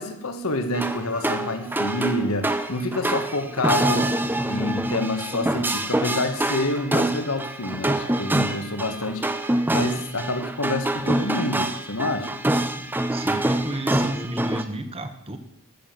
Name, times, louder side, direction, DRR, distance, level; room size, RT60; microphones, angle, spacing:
voice 1, 0.0-4.1 4.5-9.2 9.7-12.3, left 1 dB, 75° left, 8 dB, 1.5 m, -27 dB
sound 1, 0.7-14.6, right 1 dB, 10° right, 0.7 m, -25 dB
voice 2, 13.1-15.4, right 1 dB, 25° right, 8 dB, 1.1 m, -32 dB
13.5 x 7.1 x 7.6 m, 0.81 s
head